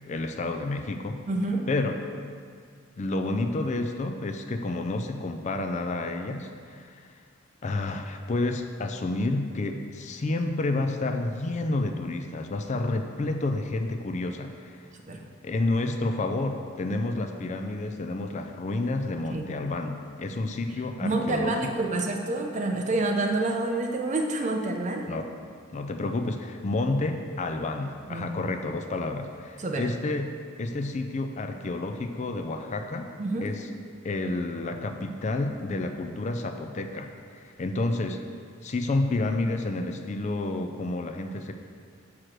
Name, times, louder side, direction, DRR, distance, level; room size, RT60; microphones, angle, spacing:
voice 1, 0.1-1.2 1.7-1.9 3.0-7.1 7.6-14.8 15.4-21.5 25.1-25.2 25.7-30.3 30.6-33.1 33.4-33.6 34.0-37.1 37.3-38.2 38.6-41.5, left 2 dB, 35° left, 5 dB, 0.4 m, -30 dB
voice 2, 1.3-1.7 15.1-15.2 19.3-19.5 21.0-25.1 28.1-28.3 29.6-29.8 33.2-33.5, right 2 dB, 35° right, 3 dB, 0.6 m, -28 dB
6.3 x 4.8 x 6.0 m, 2.1 s
head